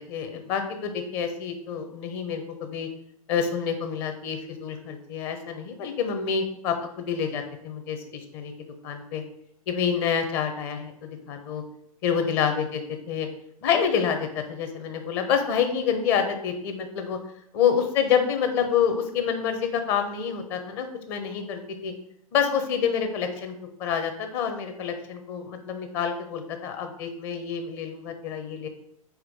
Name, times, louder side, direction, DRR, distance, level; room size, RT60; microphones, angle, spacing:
voice 1, 0.1-2.9 3.3-6.7 7.1-8.5 8.8-9.2 9.7-11.6 12.0-12.6 13.1-13.3 13.6-17.2 17.5-21.9 22.3-23.5 23.8-28.7, left 7 dB, 45° left, 6 dB, 1.1 m, -27 dB
4.9 x 4.3 x 4.9 m, 0.70 s
figure-of-eight pair, 100°, 19 cm